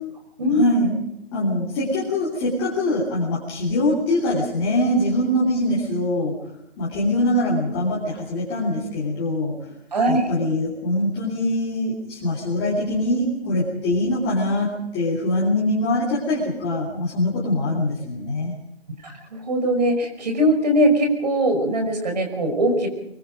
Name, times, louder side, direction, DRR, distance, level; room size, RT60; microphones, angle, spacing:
voice 1, 0.5-1.0 1.3-6.3 6.8-9.5 10.1-18.5, left 1 dB, 10° left, -8 dB, 3.2 m, -23 dB
voice 2, 9.9-10.3 19.0-22.9, right 1 dB, 40° right, 4 dB, 5.4 m, -21 dB
23.5 x 22.0 x 5.2 m, 0.79 s
figure-of-eight pair, 170°, 34 cm